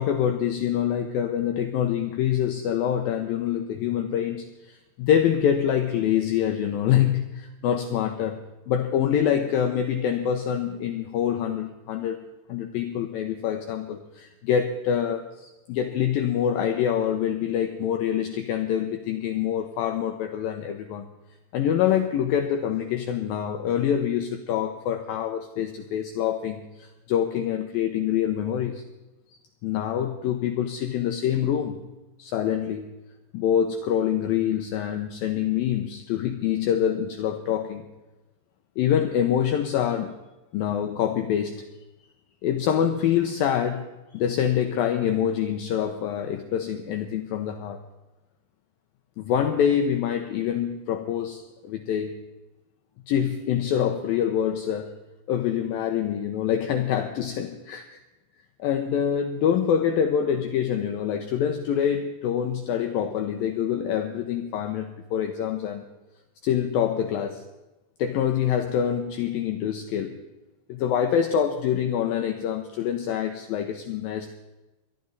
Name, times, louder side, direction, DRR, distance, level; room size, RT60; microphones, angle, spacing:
voice 1, 0.0-8.4 8.7-12.2 12.5-21.1 21.5-28.8 29.6-31.8 32.2-32.9 33.3-37.9 38.8-40.2 40.5-41.6 42.4-43.8 44.1-47.8 49.2-52.1 53.1-55.0 55.3-58.0 58.6-65.8 66.4-67.4 68.0-70.2 70.7-74.3, left 9 dB, 80° left, 6 dB, 2.2 m, -25 dB
23.0 x 12.0 x 3.9 m, 1.1 s
omnidirectional pair, 5.0 m